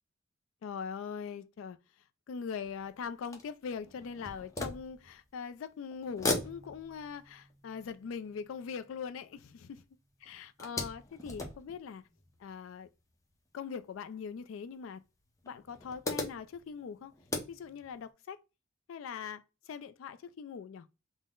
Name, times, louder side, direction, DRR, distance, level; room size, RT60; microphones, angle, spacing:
voice 1, 0.6-1.8 2.3-9.8 10.2-12.1 12.4-12.9 13.5-15.0 15.4-17.1 17.5-18.4 18.9-20.9, left 6 dB, 80° left, 0.3 m, -42 dB
sound 1, 2.6-5.6 5.9-9.8 10.2-12.8 13.7-13.8 14.2-14.3 15.4-18.0, left 2 dB, 15° left, 0.6 m, -40 dB
3.9 x 2.1 x 3.6 m
head